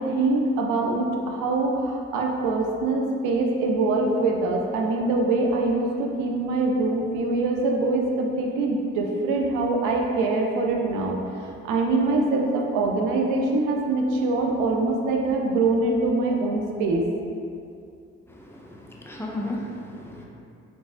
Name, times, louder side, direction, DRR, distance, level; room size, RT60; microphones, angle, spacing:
voice 1, 0.0-17.1, right 2 dB, 85° right, 1 dB, 0.5 m, -24 dB
voice 2, 18.5-20.3, left 1 dB, 10° left, -2 dB, 0.6 m, -34 dB
3.3 x 3.2 x 2.5 m, 2.5 s
hypercardioid pair, 45°, 31 cm